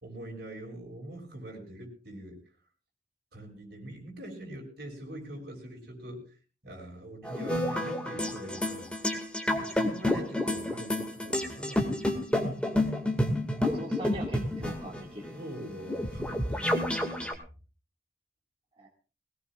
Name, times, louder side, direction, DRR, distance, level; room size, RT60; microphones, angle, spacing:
voice 1, 0.0-2.4 3.3-6.4 6.6-9.1 9.5-11.9 15.3-16.8, right 1 dB, 60° right, 0 dB, 6.4 m, -43 dB
sound 1, 7.2-17.3, left 1 dB, 5° left, 2.1 m, -30 dB
voice 2, 13.6-15.4 18.8-18.9, right 1 dB, 30° right, -2 dB, 2.2 m, -41 dB
21.5 x 18.5 x 2.5 m, 0.35 s
head